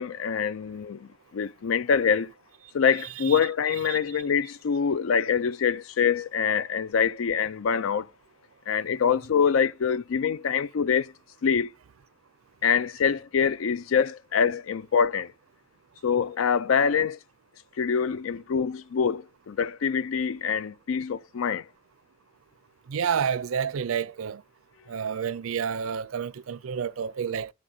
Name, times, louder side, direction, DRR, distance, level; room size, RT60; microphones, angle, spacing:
voice 1, 0.0-2.3 2.7-8.1 8.7-11.1 11.4-11.7 12.6-15.3 16.0-17.2 17.8-21.7, left 6 dB, 75° left, 0.4 m, -25 dB
voice 2, 22.9-24.4 24.9-27.5, right 7 dB, 80° right, 0.4 m, -29 dB
12.0 x 7.4 x 2.7 m
head